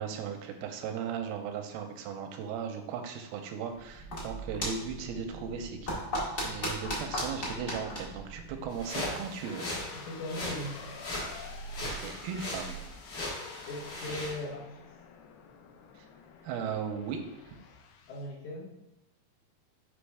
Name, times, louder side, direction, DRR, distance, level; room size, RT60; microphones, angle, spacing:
voice 1, 0.0-6.0 6.4-9.7 11.9-12.8 16.0-16.1 16.4-17.6, right 7 dB, 90° right, 5 dB, 2.6 m, -37 dB
sound 1, 3.8-9.1, equal, 30° left, 1.5 m, -37 dB
sound 2, 8.7-14.4, left 1 dB, 45° left, 1.5 m, -39 dB
sound 3, 9.4-18.3, left 2 dB, 85° left, 2.5 m, -48 dB
voice 2, 9.9-11.0 13.7-14.8 18.1-18.8, left 1 dB, 65° left, -2 dB, 2.0 m, -39 dB
6.2 x 5.2 x 3.3 m, 0.95 s
omnidirectional pair, 4.3 m